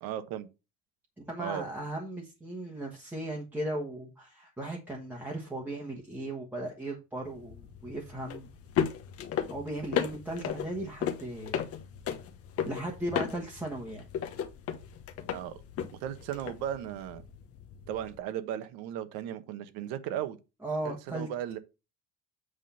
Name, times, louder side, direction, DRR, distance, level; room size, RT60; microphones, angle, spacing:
voice 1, 0.0-0.5 1.4-1.7 15.3-15.6 16.0-17.2 17.9-20.4 20.8-21.6, right 10 dB, 75° right, 1.2 m, -36 dB
voice 2, 1.2-8.5 9.5-11.6 12.6-14.0 20.6-21.3, right 1 dB, 5° right, 1.3 m, -37 dB
sound 1, 7.2-18.2, left 8 dB, 40° left, 1.0 m, -36 dB
8.2 x 3.7 x 5.6 m
cardioid pair, 165°, 36 cm